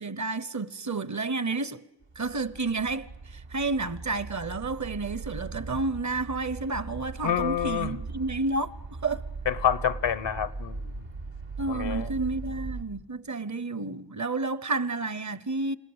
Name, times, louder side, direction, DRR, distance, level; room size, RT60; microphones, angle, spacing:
voice 1, 0.0-1.8 2.2-8.7 9.0-9.2 11.6-15.8, right 3 dB, 40° right, 0.8 m, -30 dB
sound 1, 2.0-12.8, right 4 dB, 90° right, 2.1 m, -39 dB
voice 2, 7.2-8.0 9.5-11.0 11.7-12.1, left 9 dB, 80° left, 0.9 m, -28 dB
28.5 x 17.5 x 8.0 m
wide cardioid pair, 60°, 43 cm